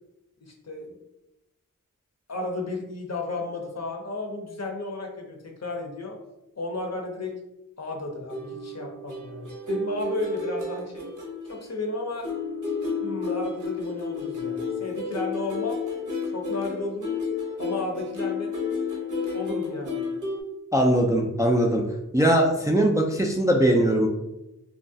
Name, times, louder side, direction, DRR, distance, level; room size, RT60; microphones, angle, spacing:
voice 1, 0.4-1.0 2.3-6.2 6.6-7.4 7.8-11.0 11.5-12.3 13.0-15.8 16.3-17.1 17.6-18.5 19.3-20.0, left 2 dB, 50° left, 1 dB, 0.6 m, -33 dB
sound 1, 8.3-11.9 12.2-20.4, left 4 dB, 65° right, 0.7 m, -31 dB
voice 2, 20.7-21.8 22.1-24.1, right 1 dB, 10° right, 0 dB, 0.3 m, -21 dB
3.0 x 2.2 x 2.6 m, 0.93 s
wide cardioid pair, 55°, 33 cm